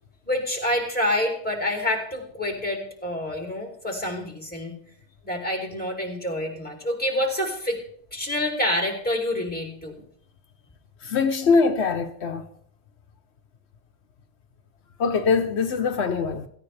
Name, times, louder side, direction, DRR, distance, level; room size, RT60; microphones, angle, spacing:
voice 1, 0.3-4.7 5.2-7.8 8.1-9.9, left 1 dB, 10° left, 3.4 m, -27 dB
voice 2, 11.0-12.5 15.0-16.5, left 5 dB, 80° left, 1.2 m, -22 dB
17.0 x 15.5 x 3.4 m
omnidirectional pair, 1.1 m